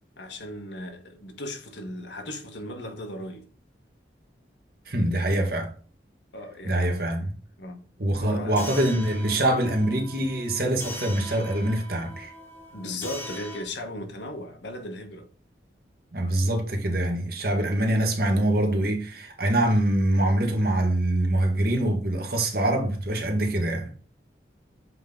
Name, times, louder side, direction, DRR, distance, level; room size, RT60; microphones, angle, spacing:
voice 1, 0.2-3.5 6.3-7.2 7.6-7.8 8.2-8.7 12.7-15.3, left 1 dB, 85° left, 1.4 m, -37 dB
voice 2, 4.9-5.7 6.6-7.4 8.0-12.3 16.1-23.9, right 1 dB, 55° right, 1.5 m, -24 dB
sound 1, 8.6-13.6, left 1 dB, 10° left, 1.1 m, -41 dB
7.7 x 3.8 x 3.9 m
head